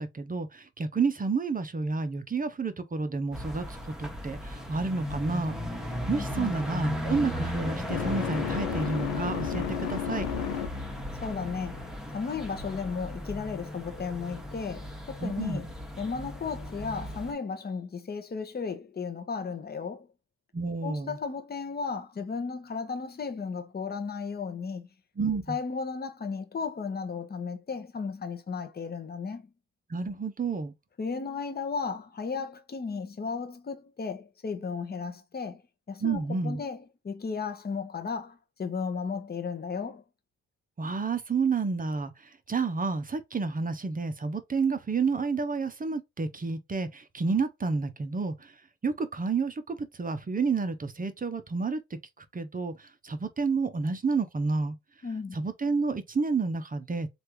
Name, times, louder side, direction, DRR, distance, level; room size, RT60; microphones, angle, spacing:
voice 1, 0.0-3.7 4.0-5.6 6.1-10.3 15.2-15.7 20.5-21.2 25.2-25.6 29.9-30.7 36.0-36.6 40.8-42.1 42.5-48.5 48.8-52.0 52.3-54.8 55.3-57.1, right 4 dB, 25° right, 0.7 m, -30 dB
sound 1, 3.3-17.3, left 1 dB, ahead, 1.0 m, -36 dB
sound 2, 5.3-11.0, left 9 dB, 75° left, 0.7 m, -35 dB
voice 2, 6.1-6.5 11.1-15.7 16.0-20.1 20.8-24.9 25.5-29.5 31.0-35.6 35.9-40.0 55.0-55.4, left 5 dB, 25° left, 0.8 m, -35 dB
3.2 x 2.6 x 3.0 m
hypercardioid pair, 50°, 37 cm